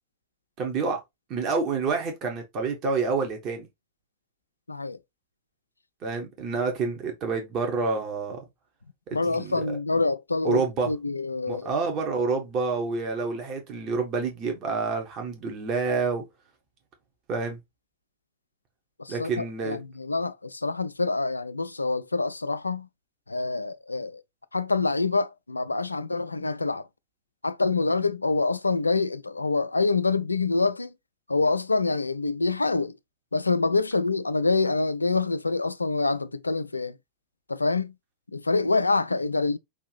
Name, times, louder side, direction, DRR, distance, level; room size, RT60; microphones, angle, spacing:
voice 1, 0.6-1.0 1.3-3.7 6.0-8.4 9.1-9.6 10.4-10.9 11.5-16.2 17.3-17.6 19.1-19.8, right 4 dB, 35° right, 1.2 m, -28 dB
voice 2, 4.7-5.0 9.1-11.7 19.0-22.9 23.3-24.2 24.5-26.9 27.4-30.9 31.3-33.0 33.3-37.0 37.5-37.9 38.3-39.6, left 3 dB, 80° left, 0.3 m, -26 dB
5.3 x 2.6 x 3.3 m
figure-of-eight pair, 90°, 0 cm